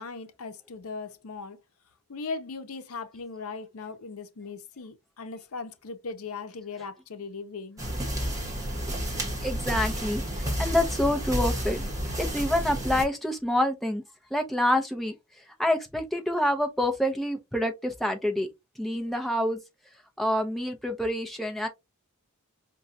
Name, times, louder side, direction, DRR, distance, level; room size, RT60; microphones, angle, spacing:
voice 1, 0.0-1.6 2.1-7.8, left 4 dB, 75° left, 0.7 m, -38 dB
sound 1, 7.8-13.0, equal, 15° right, 1.3 m, -30 dB
voice 2, 9.4-11.8 12.2-14.0 14.3-15.1 15.6-18.5 18.8-19.6 20.2-21.7, left 1 dB, ahead, 0.6 m, -27 dB
5.2 x 2.3 x 2.7 m
head